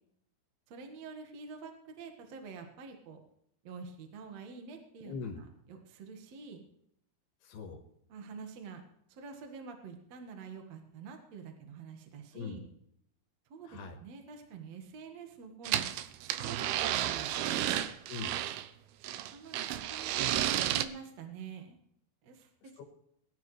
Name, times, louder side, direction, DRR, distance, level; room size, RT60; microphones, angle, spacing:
voice 1, 0.7-3.2 3.6-5.1 5.7-6.6 8.1-8.8 9.1-12.6 13.5-17.7 19.3-21.8 22.2-22.7, right 5 dB, 55° right, 4 dB, 2.3 m, -47 dB
voice 2, 5.0-5.4 7.4-7.8 12.3-12.6 13.6-14.0 18.1-18.4 22.6-22.8, left 5 dB, 90° left, 1 dB, 3.4 m, -41 dB
sound 1, 15.7-18.7 19.0-20.9, right 12 dB, 90° right, 2.7 m, -32 dB
21.0 x 11.5 x 3.2 m, 0.73 s
omnidirectional pair, 4.5 m